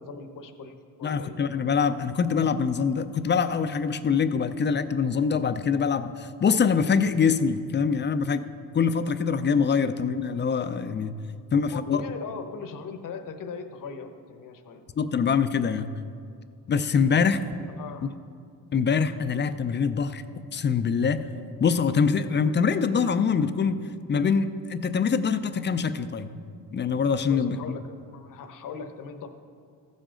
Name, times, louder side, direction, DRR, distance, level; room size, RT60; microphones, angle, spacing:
voice 1, 0.0-1.5 11.5-14.8 17.8-18.1 27.3-29.3, left 5 dB, 55° left, 7 dB, 0.9 m, -39 dB
voice 2, 1.0-8.4 8.7-11.1 11.5-12.0 15.0-15.9 16.7-17.4 18.7-20.2 20.5-21.2 21.6-23.8 24.1-26.3 26.7-27.7, left 6 dB, 30° left, 11 dB, 0.4 m, -24 dB
14.0 x 7.4 x 3.8 m, 2.3 s
cardioid pair, 100°, 39 cm